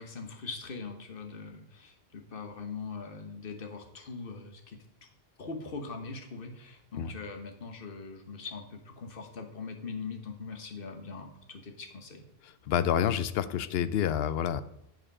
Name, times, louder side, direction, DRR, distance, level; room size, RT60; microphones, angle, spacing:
voice 1, 0.0-5.1 5.4-12.2, left 4 dB, 60° left, 5 dB, 1.3 m, -41 dB
voice 2, 12.4-14.6, left 9 dB, 75° left, 14 dB, 0.8 m, -28 dB
9.1 x 5.0 x 5.4 m, 0.78 s
omnidirectional pair, 1.0 m